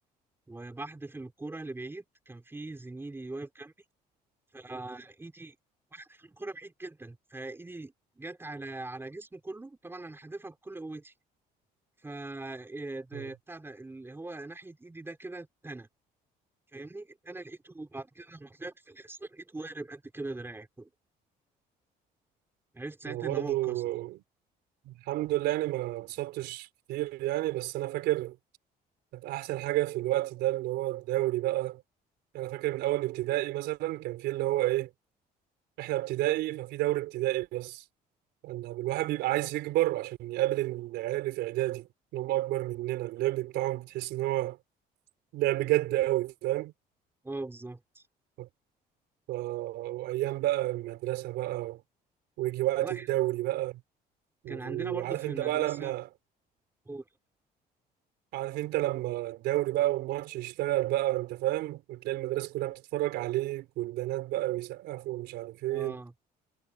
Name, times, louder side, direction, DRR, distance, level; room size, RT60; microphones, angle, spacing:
voice 1, 0.5-3.7 4.5-5.6 5.9-11.1 12.0-15.9 16.7-20.9 22.7-23.9 47.2-48.0 52.8-53.1 54.5-55.9 56.9-57.0 65.7-66.1, right 2 dB, 15° right, 3.9 m, -41 dB
voice 2, 23.1-24.2 24.8-28.4 29.1-31.8 32.3-34.9 35.8-37.8 38.4-41.9 42.1-44.6 45.3-46.7 48.4-48.5 49.3-51.8 52.4-53.8 54.4-56.1 58.3-66.0, right 16 dB, 85° right, 4.2 m, -30 dB
cardioid pair, 110°, 17 cm